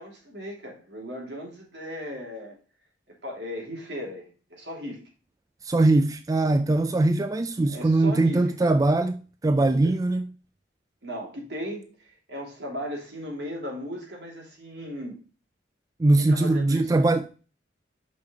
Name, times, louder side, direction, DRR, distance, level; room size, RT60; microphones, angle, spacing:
voice 1, 0.0-2.6 3.1-5.0 7.7-8.7 9.7-9.9 11.0-15.1 16.1-16.9, equal, 70° right, 3.1 m, -37 dB
voice 2, 5.6-10.2 16.0-17.4, right 2 dB, 20° right, 0.3 m, -22 dB
6.5 x 5.3 x 4.5 m
head